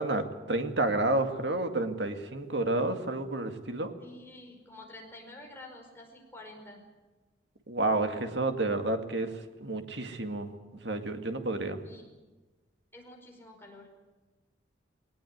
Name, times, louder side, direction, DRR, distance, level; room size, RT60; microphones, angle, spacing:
voice 1, 0.0-3.9 7.7-9.3 9.6-10.5 10.8-11.8, right 2 dB, 70° right, 6 dB, 2.2 m, -30 dB
voice 2, 4.0-6.8 11.8-12.1 12.9-14.0, left 1 dB, 10° left, 1 dB, 5.0 m, -49 dB
20.5 x 19.0 x 9.6 m, 1.2 s
head